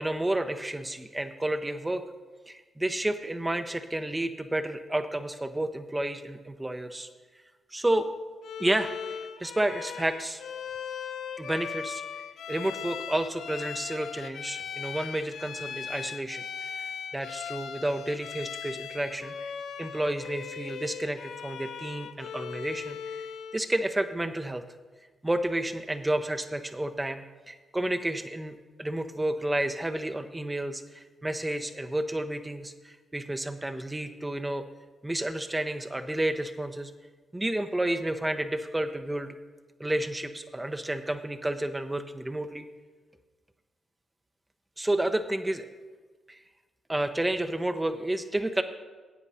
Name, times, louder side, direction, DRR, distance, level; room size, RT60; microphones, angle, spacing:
voice 1, 0.0-2.0 2.5-7.1 7.7-8.1 8.6-10.4 11.4-12.0 12.5-16.9 17.1-19.5 19.8-23.3 23.5-24.6 25.2-34.6 35.0-36.9 37.3-39.3 39.8-42.6 44.8-45.7 46.3-46.4 46.9-48.6, right 1 dB, 20° right, 8 dB, 0.7 m, -31 dB
Bowed string instrument, 8.4-23.7, left 7 dB, 70° left, 0.5 m, -39 dB
8.5 x 8.1 x 5.5 m, 1.3 s
hypercardioid pair, 45°, 0 cm